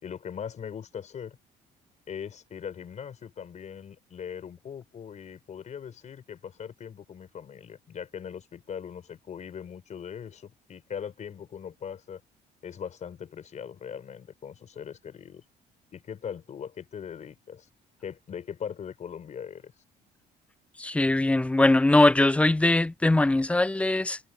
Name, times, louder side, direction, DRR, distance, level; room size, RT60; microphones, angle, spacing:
voice 1, 0.0-1.4 2.1-12.2 12.6-15.4 15.9-17.7 18.0-19.7, left 8 dB, 45° left, 5.0 m, -40 dB
voice 2, 20.8-24.2, left 2 dB, 5° left, 0.3 m, -21 dB
cardioid pair, 110°, 17 cm